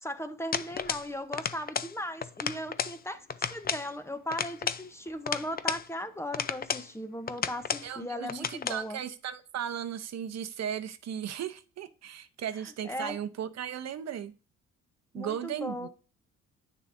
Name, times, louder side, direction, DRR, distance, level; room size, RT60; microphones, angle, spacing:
voice 1, 0.0-9.0 12.8-13.2 15.1-15.9, left 1 dB, 10° left, 0.8 m, -37 dB
sound 1, 0.5-1.1 1.3-1.9 2.2-3.0 3.3-3.9 4.3-5.9 6.3-6.9 7.3-7.9 8.3-8.8, left 7 dB, 30° left, 0.5 m, -33 dB
voice 2, 7.8-14.3 15.1-15.9, right 9 dB, 60° right, 0.8 m, -36 dB
9.4 x 6.4 x 2.6 m
cardioid pair, 90°, 30 cm